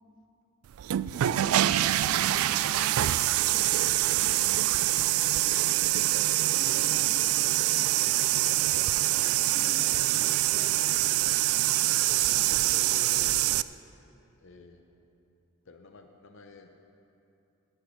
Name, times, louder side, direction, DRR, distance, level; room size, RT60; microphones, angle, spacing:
sound 1, 0.7-13.6, right 15 dB, 85° right, 0.3 m, -25 dB
voice 1, 1.6-3.7 6.5-10.9, equal, 20° right, -10 dB, 2.1 m, -49 dB
voice 2, 11.7-13.7 14.4-14.8 15.6-16.8, left 4 dB, 60° left, 4 dB, 0.7 m, -49 dB
18.5 x 12.0 x 3.2 m, 2.8 s
head